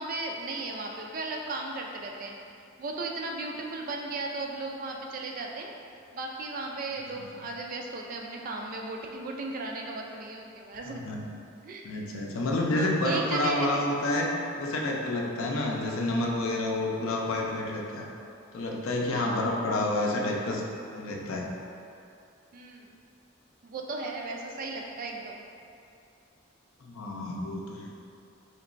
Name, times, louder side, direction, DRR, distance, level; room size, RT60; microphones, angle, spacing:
voice 1, 0.0-2.3 2.8-5.7 6.1-11.0 11.6-11.8 12.7-13.9 19.1-19.4 22.5-22.9 23.6-25.4, right 3 dB, 40° right, 1 dB, 0.3 m, -36 dB
voice 2, 10.9-11.3 11.8-18.1 18.5-20.6 20.9-21.5 26.8-27.9, left 2 dB, 75° left, -1 dB, 0.5 m, -29 dB
4.4 x 2.9 x 2.5 m, 2.5 s
head